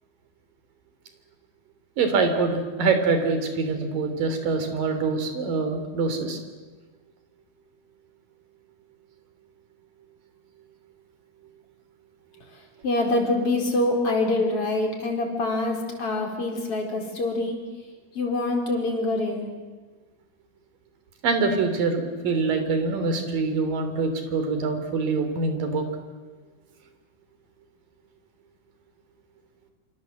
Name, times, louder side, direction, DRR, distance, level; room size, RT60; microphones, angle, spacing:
voice 1, 2.0-6.4 21.2-25.9, right 4 dB, 60° right, 7 dB, 4.7 m, -24 dB
voice 2, 12.5-17.6 18.1-19.5, left 2 dB, 35° left, 1 dB, 5.1 m, -25 dB
27.0 x 26.5 x 7.9 m, 1.3 s
omnidirectional pair, 4.4 m